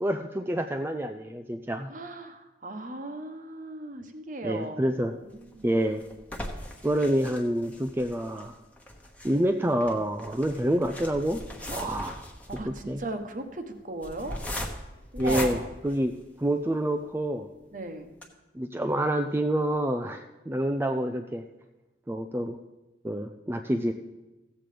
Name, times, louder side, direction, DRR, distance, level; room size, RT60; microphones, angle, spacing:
voice 1, 0.0-1.9 4.4-5.1 5.6-6.0 6.8-8.6 9.2-11.4 11.8-12.1 12.9-13.0 15.2-15.6 15.8-16.1 16.4-17.5 18.5-21.4 22.1-22.6 23.0-23.9, right 1 dB, 10° right, 6 dB, 0.4 m, -27 dB
voice 2, 1.9-5.8 11.7-12.2 12.5-14.4 15.1-15.7 17.7-18.1, right 2 dB, 45° right, 6 dB, 1.1 m, -37 dB
sound 1, 5.3-16.7 17.2-17.3 17.6-17.7 18.1-18.2, left 1 dB, 10° left, 1.1 m, -39 dB
15.5 x 7.6 x 5.0 m, 1.1 s
head